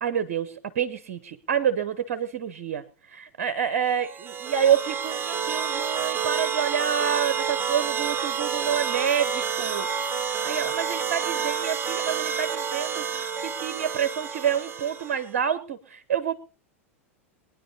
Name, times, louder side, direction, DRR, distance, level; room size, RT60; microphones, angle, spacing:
voice 1, 0.0-2.8 3.1-4.1 4.4-9.9 10.4-16.3, right 8 dB, 55° right, 13 dB, 0.9 m, -28 dB
sound 1, 4.0-15.3, right 7 dB, 25° right, 1.4 m, -29 dB
22.5 x 10.0 x 4.1 m, 0.34 s
figure-of-eight pair, 90°, 8 cm